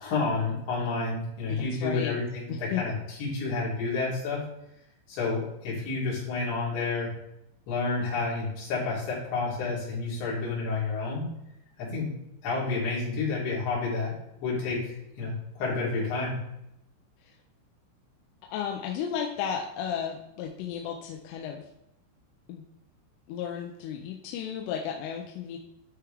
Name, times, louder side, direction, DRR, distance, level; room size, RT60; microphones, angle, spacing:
voice 1, 0.0-4.4 5.1-7.1 7.7-11.2 11.8-12.1 12.4-14.2 14.4-16.4, left 3 dB, 65° left, -7 dB, 5.3 m, -30 dB
voice 2, 1.5-2.2 2.5-2.8 17.2-17.4 18.5-21.7 22.5-22.7 23.3-25.6, left 8 dB, 85° left, 1 dB, 3.2 m, -34 dB
12.5 x 4.8 x 3.4 m, 0.83 s
omnidirectional pair, 5.8 m